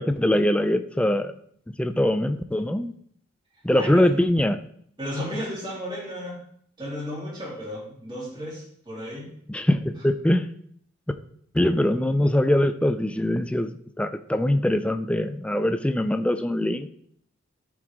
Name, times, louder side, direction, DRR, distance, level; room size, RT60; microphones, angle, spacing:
voice 1, 0.0-1.3 1.8-2.9 3.6-4.6 9.5-10.5 11.5-13.7 14.0-16.9, left 1 dB, 5° left, 8 dB, 0.4 m, -22 dB
voice 2, 3.7-4.1 5.0-6.4 6.8-9.3, equal, 25° right, -6 dB, 3.3 m, -34 dB
13.5 x 4.8 x 3.6 m, 0.66 s
head